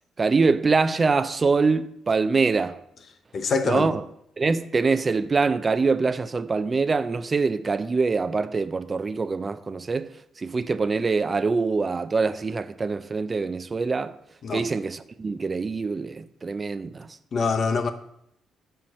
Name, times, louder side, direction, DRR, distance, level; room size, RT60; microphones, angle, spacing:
voice 1, 0.2-2.8 3.6-4.0 4.4-14.1 14.5-17.2, right 4 dB, 30° right, 0.4 m, -24 dB
voice 2, 3.3-3.9 14.4-14.7 17.3-17.9, left 4 dB, 50° left, 0.8 m, -24 dB
7.1 x 4.5 x 6.4 m
cardioid pair, 90°, 0 cm